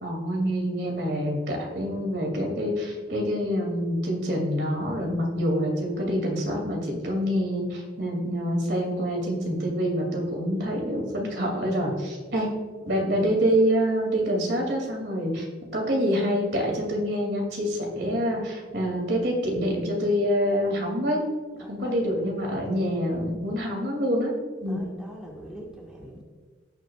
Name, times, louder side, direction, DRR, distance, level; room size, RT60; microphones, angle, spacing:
voice 1, 0.0-12.5 12.8-15.5 15.7-21.2 21.7-24.3 24.6-24.8, equal, 60° right, 0 dB, 2.5 m, -26 dB
voice 2, 21.6-22.3 24.6-26.2, equal, 5° right, -3 dB, 1.5 m, -44 dB
18.0 x 6.5 x 2.4 m, 1.5 s
head